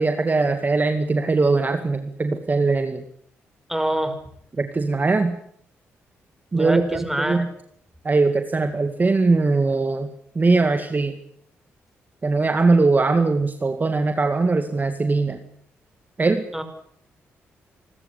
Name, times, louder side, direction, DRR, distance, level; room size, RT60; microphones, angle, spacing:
voice 1, 0.0-3.0 4.6-5.4 6.5-7.5 8.0-10.1 10.4-11.2 12.2-15.4 16.2-16.5, right 3 dB, 35° right, 7 dB, 2.2 m, -21 dB
voice 2, 3.7-4.2 6.5-7.5 16.5-16.6, right 1 dB, 5° right, 9 dB, 5.4 m, -25 dB
28.0 x 13.5 x 8.5 m, 0.68 s
supercardioid pair, 55°, 5 cm